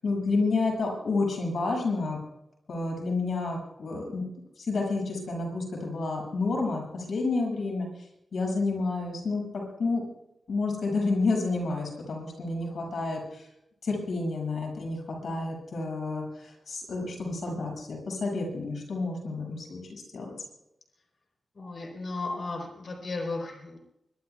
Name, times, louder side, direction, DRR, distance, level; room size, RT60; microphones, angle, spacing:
voice 1, 0.0-2.2 2.7-4.2 4.6-8.1 8.3-10.0 10.5-13.5 13.8-20.3, left 3 dB, 60° left, 0 dB, 7.1 m, -30 dB
voice 2, 21.5-23.8, left 3 dB, 45° left, 2 dB, 4.2 m, -35 dB
25.0 x 23.0 x 2.4 m, 0.81 s
wide cardioid pair, 170°, 0 cm